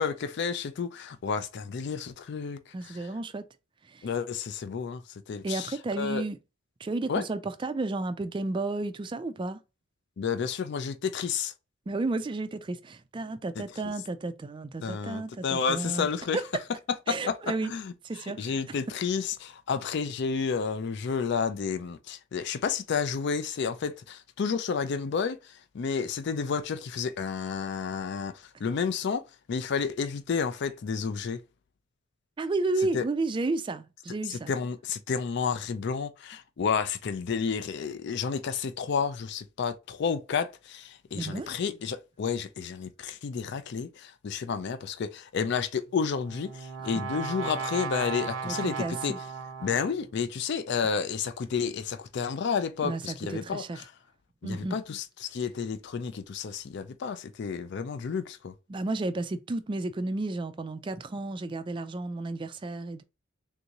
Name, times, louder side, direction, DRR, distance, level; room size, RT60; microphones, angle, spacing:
voice 1, 0.0-3.1 4.0-6.3 7.1-7.2 10.2-11.5 13.6-13.9 14.8-16.4 17.1-31.4 32.9-33.0 34.2-49.1 49.6-53.9 54.4-58.5, left 6 dB, 60° left, 0.4 m, -31 dB
voice 2, 2.7-3.4 3.9-4.0 5.4-6.4 6.8-9.6 11.9-16.1 16.3-16.4 17.1-17.7 18.0-18.5 32.4-34.5 41.1-41.6 48.4-49.2 52.8-53.8 54.4-54.8 58.7-63.0, right 2 dB, 25° right, 0.3 m, -32 dB
Brass instrument, 45.9-50.1, right 6 dB, 80° right, 0.6 m, -36 dB
3.5 x 2.6 x 2.9 m
head